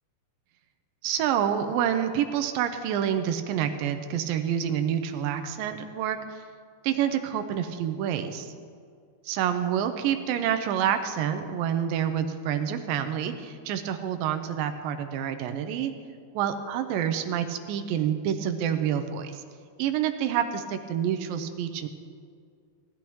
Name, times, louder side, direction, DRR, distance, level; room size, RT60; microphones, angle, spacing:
voice 1, 1.0-6.4 6.8-8.5 9.2-15.9 16.3-19.4 19.8-21.9, right 9 dB, 85° right, 7 dB, 2.0 m, -28 dB
17.0 x 12.0 x 3.1 m, 2.2 s
omnidirectional pair, 4.6 m